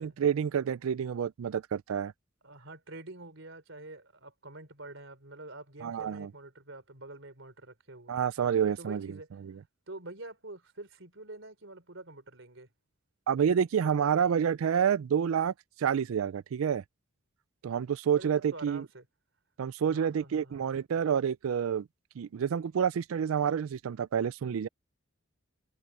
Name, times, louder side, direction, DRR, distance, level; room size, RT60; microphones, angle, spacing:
voice 1, 0.0-2.1 5.8-6.3 8.1-9.1 13.3-15.5 15.8-16.8 17.6-18.8 19.6-21.9 22.2-24.7, right 7 dB, 85° right, 0.4 m, -28 dB
voice 2, 2.4-8.2 8.8-9.3 9.9-12.7 18.2-19.1 19.9-20.7, right 2 dB, 65° right, 4.4 m, -46 dB
head